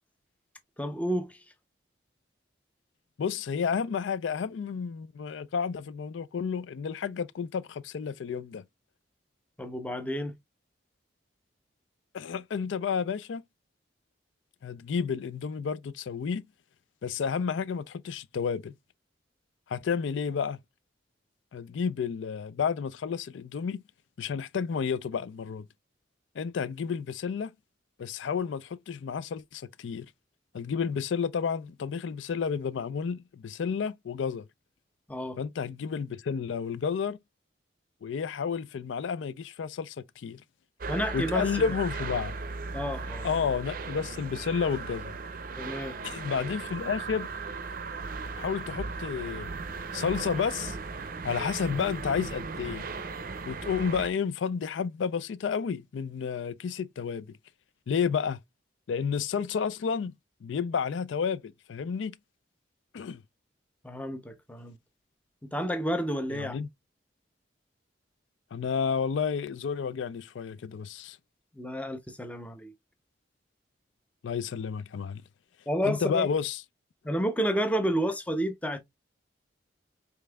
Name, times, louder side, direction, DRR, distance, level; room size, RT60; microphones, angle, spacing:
voice 1, 0.8-1.4 9.6-10.4 35.1-35.4 40.9-41.4 42.7-43.3 45.6-45.9 63.8-64.8 65.4-66.6 71.6-72.7 75.7-76.3 77.0-78.8, equal, 5° left, 0.5 m, -30 dB
voice 2, 3.2-8.6 12.1-13.4 14.6-16.4 17.0-18.7 19.7-20.6 21.5-23.8 24.2-25.7 26.4-27.5 28.0-30.1 30.5-34.5 35.4-37.2 38.0-40.4 41.1-42.4 43.2-45.2 46.0-47.3 48.4-49.5 49.9-50.8 51.2-52.9 53.5-57.4 57.9-58.4 58.9-60.1 60.4-62.2 62.9-63.2 66.3-66.7 68.5-71.2 74.2-75.2 75.8-76.6, left 6 dB, 80° left, 0.4 m, -31 dB
sound 1, 40.8-54.1, right 4 dB, 45° right, 0.5 m, -37 dB
5.2 x 3.4 x 2.2 m
head